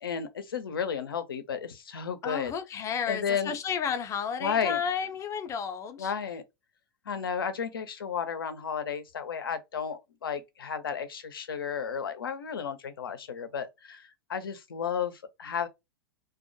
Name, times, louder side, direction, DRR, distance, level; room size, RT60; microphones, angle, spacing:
voice 1, 0.0-2.5 3.1-3.6 4.4-4.8 6.0-6.4 7.1-15.7, left 7 dB, 80° left, 0.5 m, -33 dB
voice 2, 2.2-6.1, left 7 dB, 25° left, 0.5 m, -32 dB
2.2 x 2.1 x 2.6 m
hypercardioid pair, 100°, 12 cm